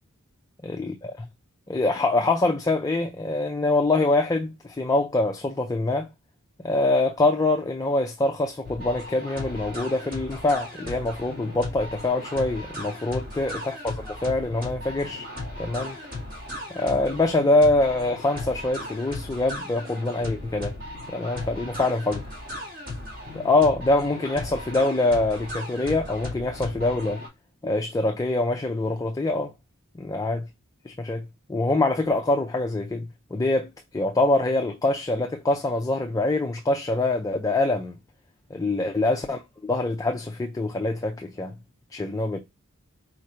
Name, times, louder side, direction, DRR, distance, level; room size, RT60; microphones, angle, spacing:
voice 1, 0.6-1.3 1.7-6.1 6.6-15.3 15.6-16.0 16.7-20.7 21.1-22.3 23.3-27.2 27.6-29.5 29.9-30.5 30.9-37.9 38.5-41.6 41.9-42.4, left 2 dB, 15° left, 0.4 m, -24 dB
sound 1, 8.6-27.3, left 1 dB, 40° right, 2.2 m, -36 dB
4.5 x 2.6 x 4.2 m
head